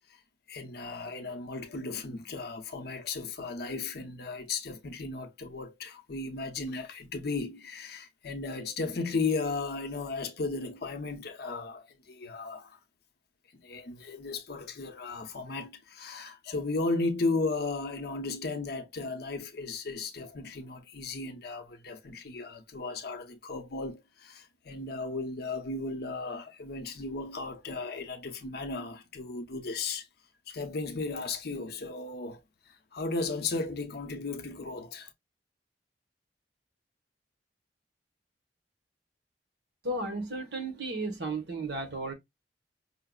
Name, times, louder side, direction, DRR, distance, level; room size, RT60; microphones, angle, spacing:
voice 1, 0.5-12.8 13.6-30.1 30.5-32.4 32.7-35.1, left 3 dB, 60° left, 0.7 m, -35 dB
voice 2, 39.8-42.1, right 2 dB, 65° right, 1.1 m, -34 dB
5.6 x 2.0 x 2.2 m
head